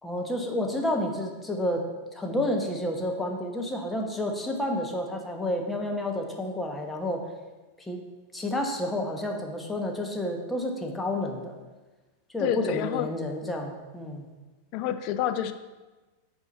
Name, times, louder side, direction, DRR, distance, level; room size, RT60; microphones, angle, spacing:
voice 1, 0.0-7.2 7.8-8.0 8.3-11.6 12.3-14.3, left 1 dB, 10° left, 2 dB, 1.0 m, -30 dB
voice 2, 12.4-13.1 14.7-15.5, left 10 dB, 40° left, 10 dB, 0.5 m, -28 dB
8.3 x 4.6 x 5.3 m, 1.2 s
figure-of-eight pair, 90°, 0 cm